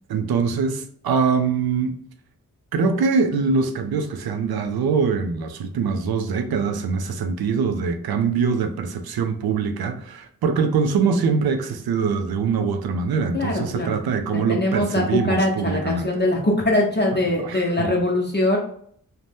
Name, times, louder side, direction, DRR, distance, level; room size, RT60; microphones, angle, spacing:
voice 1, 0.1-1.9 2.7-16.2 17.4-17.9, right 5 dB, 85° right, 6 dB, 0.5 m, -23 dB
voice 2, 13.3-14.0 14.3-18.6, left 1 dB, 30° left, -2 dB, 0.7 m, -22 dB
2.7 x 2.1 x 3.3 m, 0.62 s
cardioid pair, 65°, 36 cm